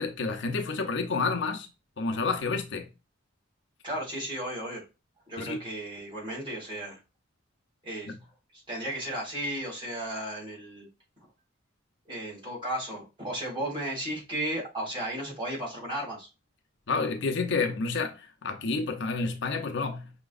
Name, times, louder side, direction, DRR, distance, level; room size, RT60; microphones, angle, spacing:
voice 1, 0.0-1.7 2.0-2.9 5.4-5.6 8.1-8.2 16.9-20.1, left 4 dB, 65° left, 0.7 m, -29 dB
voice 2, 3.8-4.8 5.3-7.0 7.8-8.1 8.5-10.9 12.1-16.3, right 1 dB, 25° right, 2.7 m, -34 dB
5.7 x 2.9 x 2.4 m
head